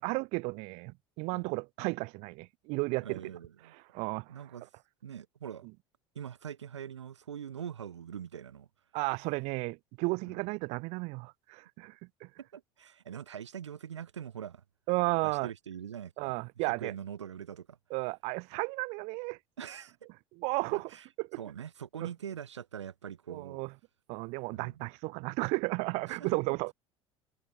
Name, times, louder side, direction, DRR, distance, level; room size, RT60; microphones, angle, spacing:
voice 1, 0.0-3.3 3.9-4.4 8.9-11.9 12.2-12.3 14.9-15.5 16.2-16.9 17.9-19.4 20.4-20.9 21.2-21.4 22.0-22.1 23.3-23.7 24.1-26.7, right 28 dB, 45° right, 0.4 m, -33 dB
voice 2, 3.0-3.7 4.3-4.7 5.0-5.7 6.1-8.7 10.3-10.4 12.4-14.6 15.2-17.8 19.6-20.0 20.7-21.1 21.4-23.6 24.5-24.8 26.1-26.4, right 8 dB, 75° right, 0.9 m, -43 dB
figure-of-eight pair, 70°, 15 cm